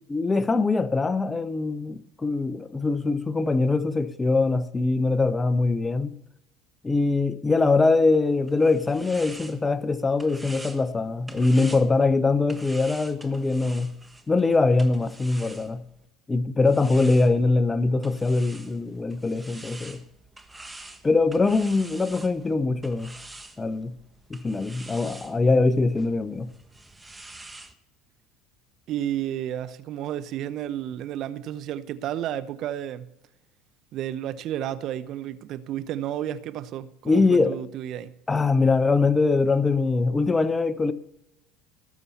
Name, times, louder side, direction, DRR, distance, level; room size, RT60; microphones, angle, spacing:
voice 1, 0.1-6.1 6.8-13.9 14.3-15.8 16.3-20.0 21.0-23.1 23.6-24.0 24.3-26.5 37.1-37.6 38.3-40.9, left 3 dB, 20° left, 0.8 m, -22 dB
sound 1, 8.2-16.1 16.6-27.7, right 2 dB, 10° right, 1.3 m, -46 dB
voice 2, 28.9-33.1 33.9-38.1, right 11 dB, 55° right, 0.6 m, -32 dB
18.5 x 7.0 x 4.2 m
hypercardioid pair, 80°, 0 cm